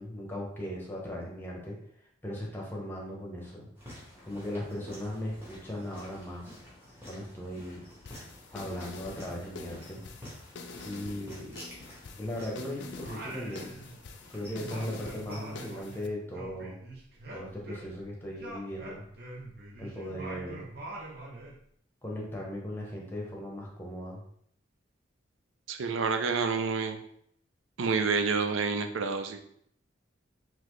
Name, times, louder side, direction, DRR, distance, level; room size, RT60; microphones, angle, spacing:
voice 1, 0.0-1.8 2.2-3.7 4.2-6.6 7.1-7.8 8.5-10.0 10.8-11.6 12.2-13.7 14.3-16.8 17.3-19.0 19.8-20.6 22.0-24.2, left 1 dB, 10° left, -2 dB, 0.9 m, -38 dB
sound 1, 3.8-15.7, equal, 10° right, 1.2 m, -50 dB
sound 2, 8.1-16.1, left 4 dB, 60° left, 0.4 m, -46 dB
Singing, 13.0-14.2 14.4-18.1 18.4-21.6, right 2 dB, 50° right, 0.7 m, -44 dB
voice 2, 25.7-27.0 27.8-29.4, right 5 dB, 80° right, 6 dB, 0.5 m, -28 dB
4.0 x 3.0 x 3.1 m, 0.68 s
head